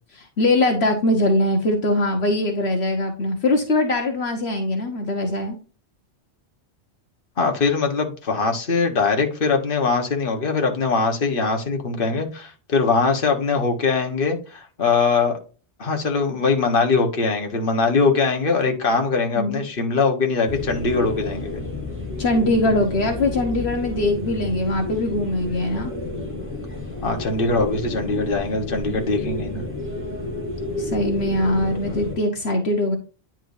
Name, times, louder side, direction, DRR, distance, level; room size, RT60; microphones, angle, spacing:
voice 1, 0.1-5.6 19.4-19.6 22.2-25.9 30.8-33.0, left 1 dB, 70° left, 3 dB, 1.5 m, -22 dB
voice 2, 7.4-15.3 15.8-21.6 27.0-29.6 31.8-32.0, left 4 dB, 50° left, 3 dB, 1.6 m, -22 dB
sound 1, 20.5-32.2, left 2 dB, 10° right, 3.2 m, -31 dB
10.0 x 4.5 x 2.6 m, 0.35 s
omnidirectional pair, 1.1 m